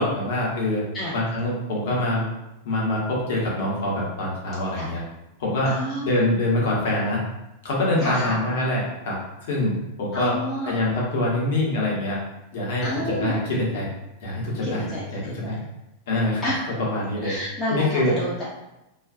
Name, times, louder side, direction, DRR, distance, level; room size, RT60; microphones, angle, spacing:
voice 1, 0.0-0.8 1.1-2.2 2.6-5.0 5.4-5.7 6.0-7.2 7.6-9.2 9.5-9.7 10.0-10.4 10.6-12.2 12.5-13.9 14.2-14.9 15.1-15.6 16.1-16.4 16.8-17.4 17.7-18.1, left 1 dB, 55° left, -4 dB, 0.8 m, -24 dB
voice 2, 5.7-6.2 8.0-8.3 10.1-10.8 12.8-13.4 14.6-15.0 15.4-15.5 16.4-16.6 17.2-18.4, left 1 dB, 25° left, -6 dB, 0.6 m, -29 dB
2.4 x 2.2 x 2.5 m, 0.92 s
figure-of-eight pair, 90°, 0 cm